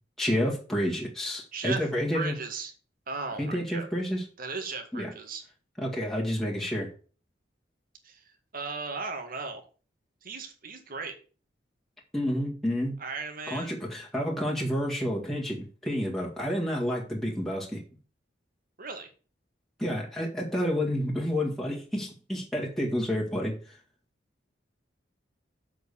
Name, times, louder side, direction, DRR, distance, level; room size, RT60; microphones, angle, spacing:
voice 1, 0.2-2.3 3.4-4.2 4.9-5.1 5.8-6.9 12.1-13.0 13.5-17.8 19.8-23.8, equal, ahead, -4 dB, 1.9 m, -29 dB
voice 2, 1.5-1.9 2.1-2.7 3.1-3.9 4.4-5.4 8.0-9.6 10.2-11.1 13.0-13.8 18.8-19.1, right 4 dB, 50° right, 5 dB, 1.9 m, -36 dB
7.7 x 5.1 x 6.9 m, 0.38 s
head